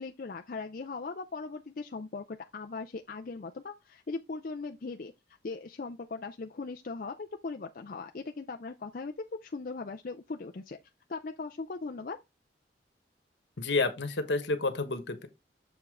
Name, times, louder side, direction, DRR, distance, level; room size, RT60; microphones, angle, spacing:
voice 1, 0.0-5.1 5.4-10.8 11.1-12.2, left 4 dB, 50° left, 0.5 m, -39 dB
voice 2, 13.6-15.3, left 3 dB, 75° left, 1.3 m, -30 dB
7.0 x 4.9 x 3.7 m
head